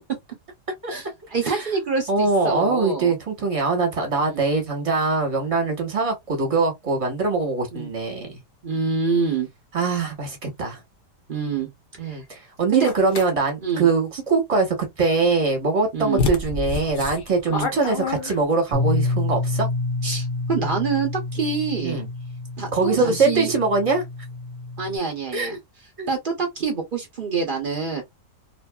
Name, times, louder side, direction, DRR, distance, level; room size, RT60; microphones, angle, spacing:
voice 1, 0.9-3.1 4.2-4.4 7.7-7.9 8.6-9.5 11.3-11.7 12.0-12.2 12.7-12.9 13.6-13.9 15.9-16.2 17.5-17.7 20.0-22.0 22.6-23.5 24.8-25.6 26.1-28.0, right 5 dB, 65° right, 0.5 m, -26 dB
voice 2, 2.1-8.4 9.7-10.8 12.0-19.7 21.8-22.1 22.7-24.0 25.3-25.6 26.0-26.1, right 3 dB, 25° right, 0.9 m, -23 dB
sound 1, 12.8-13.3 15.5-15.6 16.2-18.7, left 4 dB, 65° left, 0.5 m, -27 dB
Bass guitar, 18.7-25.0, left 2 dB, 90° right, 1.3 m, -28 dB
2.9 x 2.5 x 2.2 m
omnidirectional pair, 1.9 m